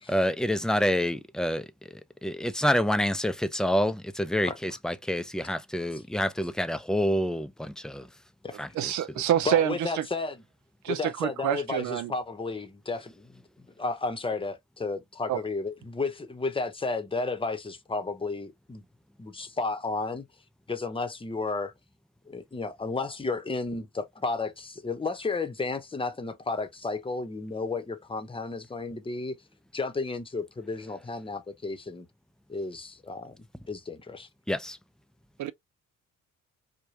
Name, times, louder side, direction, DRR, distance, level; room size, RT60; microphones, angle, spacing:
voice 1, 0.1-1.7 2.2-8.1 8.6-8.7 34.5-34.8, equal, ahead, 0.4 m, -27 dB
voice 2, 8.8-10.1 10.8-12.1 15.3-15.4 35.4-35.5, right 11 dB, 70° right, 0.6 m, -27 dB
voice 3, 9.4-10.4 10.9-18.8 19.2-20.2 20.7-21.7 22.3-29.4 29.7-32.1 32.5-34.3, left 3 dB, 15° left, 0.9 m, -33 dB
4.8 x 2.3 x 2.8 m
cardioid pair, 90°, 30 cm